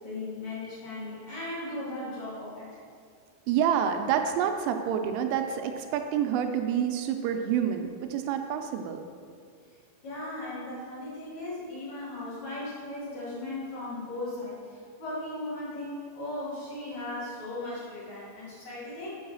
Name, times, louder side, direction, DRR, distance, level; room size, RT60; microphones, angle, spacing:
voice 1, 0.0-2.7 10.0-19.1, left 2 dB, 40° left, -9 dB, 3.1 m, -37 dB
voice 2, 3.5-9.0, right 8 dB, 85° right, 6 dB, 3.0 m, -28 dB
7.2 x 6.2 x 6.2 m, 2.1 s
omnidirectional pair, 5.9 m